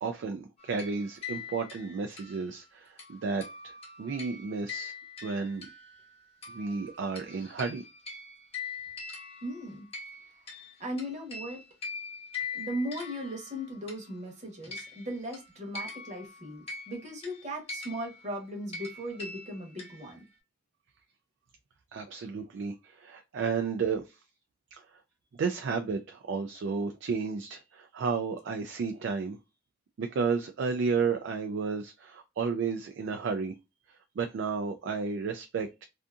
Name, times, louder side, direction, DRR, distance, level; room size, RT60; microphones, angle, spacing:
voice 1, 0.0-3.4 4.0-4.9 5.2-5.7 6.5-7.8 21.9-24.1 24.7-24.8 25.4-29.4 30.0-33.6 34.2-35.8, right 5 dB, 65° right, 0.3 m, -32 dB
sound 1, 0.6-6.1 6.4-14.3 14.6-20.3, left 4 dB, 30° left, 0.9 m, -43 dB
voice 2, 9.4-9.9 10.8-11.6 12.5-20.2, equal, 35° right, 0.9 m, -37 dB
2.6 x 2.4 x 2.3 m
head